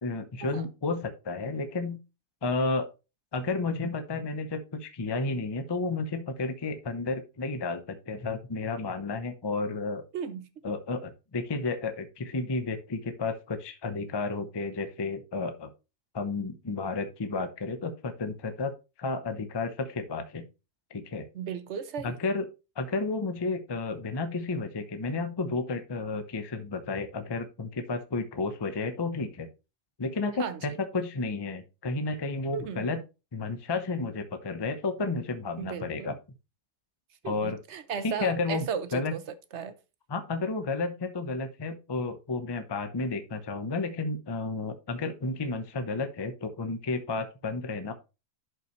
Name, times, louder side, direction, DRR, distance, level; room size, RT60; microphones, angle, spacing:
voice 1, 0.0-2.0 2.4-2.9 3.3-10.0 10.6-15.7 16.1-18.7 19.0-20.4 20.9-21.3 22.0-22.5 22.8-29.5 30.0-33.0 33.3-36.1 37.2-37.6 38.0-38.7 38.9-39.1 40.1-47.9, left 3 dB, 25° left, 0.5 m, -32 dB
voice 2, 10.1-10.5 21.3-22.2 30.4-30.6 32.5-32.8 35.6-36.1 37.2-39.2 39.5-39.7, right 7 dB, 55° right, 1.0 m, -35 dB
11.0 x 5.6 x 3.1 m
omnidirectional pair, 1.7 m